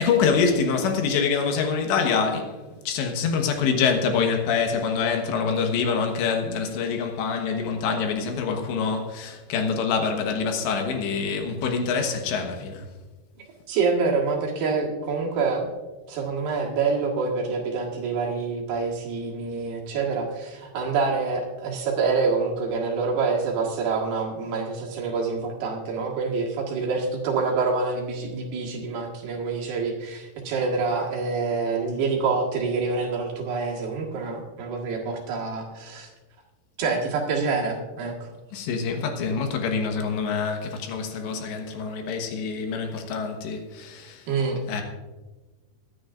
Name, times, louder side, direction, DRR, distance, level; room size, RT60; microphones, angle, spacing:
voice 1, 0.0-2.6 2.8-12.9 38.5-44.3 44.7-44.8, left 5 dB, 75° left, 3.4 m, -25 dB
voice 2, 13.4-15.8 16.1-36.1 36.8-38.3 44.3-44.6, right 4 dB, 65° right, 3.4 m, -26 dB
22.5 x 10.0 x 2.5 m
omnidirectional pair, 5.2 m